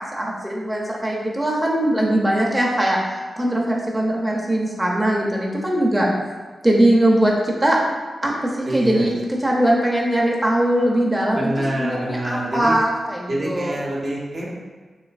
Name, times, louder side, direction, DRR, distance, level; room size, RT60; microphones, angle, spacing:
voice 1, 0.0-3.0 3.4-6.1 6.6-7.8 8.2-9.1 9.4-13.8, right 1 dB, 15° right, -3 dB, 0.6 m, -20 dB
voice 2, 8.6-9.1 11.3-12.8 13.3-14.5, right 1 dB, 60° right, -4 dB, 0.7 m, -26 dB
3.1 x 2.9 x 2.4 m, 1.4 s
cardioid pair, 50°, 0 cm